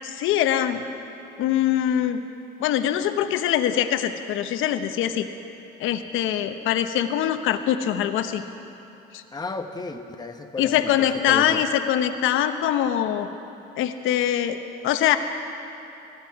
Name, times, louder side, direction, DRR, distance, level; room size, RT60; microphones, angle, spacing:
voice 1, 0.0-0.8 1.4-2.2 2.6-5.3 5.8-8.4 9.1-9.2 10.6-13.3 13.8-15.2, left 10 dB, 70° left, 8 dB, 1.0 m, -23 dB
voice 2, 9.3-11.6, left 3 dB, 20° left, 5 dB, 1.1 m, -34 dB
19.5 x 15.0 x 4.8 m, 2.9 s
supercardioid pair, 85°, 21 cm